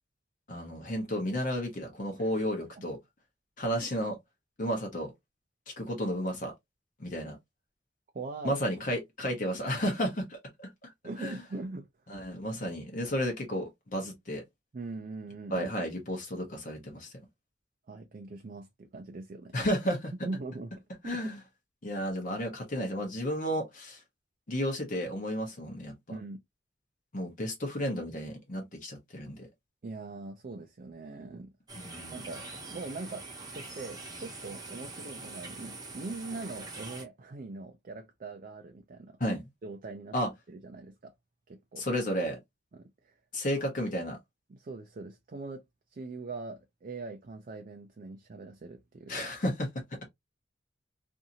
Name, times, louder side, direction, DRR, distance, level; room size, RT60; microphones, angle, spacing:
voice 1, 0.5-3.0 3.6-4.2 4.6-5.1 5.7-6.5 7.0-7.4 8.4-10.9 11.2-11.4 12.1-14.4 15.5-17.1 19.5-20.1 21.0-21.4 21.8-24.0 24.5-25.9 27.1-29.4 31.8-32.1 39.2-39.4 40.1-40.3 41.8-42.4 43.3-44.2 49.1-49.7, equal, 45° left, 0.9 m, -32 dB
voice 2, 8.1-8.6 11.0-11.9 12.5-12.8 14.7-15.7 17.9-19.6 20.2-20.7 21.1-21.3 26.1-26.4 29.8-31.5 32.1-39.2 39.6-40.1 40.5-41.1 41.5-41.9 42.7-43.1 44.5-45.6 45.9-49.2, right 3 dB, 45° right, 0.4 m, -42 dB
sound 1, 31.7-37.0, right 3 dB, 20° right, 0.9 m, -44 dB
2.7 x 2.6 x 2.7 m
head